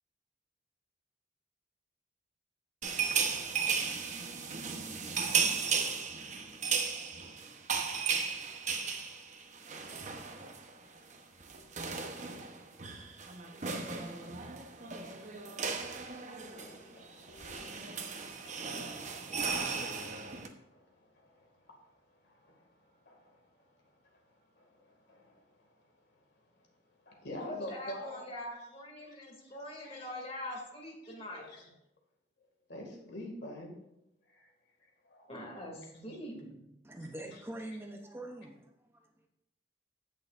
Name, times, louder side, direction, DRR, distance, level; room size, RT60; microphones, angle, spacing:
sound 1, 2.8-10.7 11.0-11.2 11.4-20.5, right 5 dB, 40° right, 0.9 m, -35 dB
voice 1, 16.2-26.2 26.5-26.7 27.0-28.3 29.0-29.5 29.8-30.1 31.0-31.7 32.7-33.8 34.3-34.5 34.8-35.3 35.9-36.1, equal, 65° left, 1 dB, 2.1 m, -50 dB
voice 2, 27.4-31.5 35.3-36.6, left 1 dB, 35° left, -1 dB, 2.4 m, -43 dB
voice 3, 36.8-39.3, right 1 dB, 15° right, 2 dB, 0.6 m, -44 dB
16.0 x 6.5 x 2.5 m, 0.84 s
head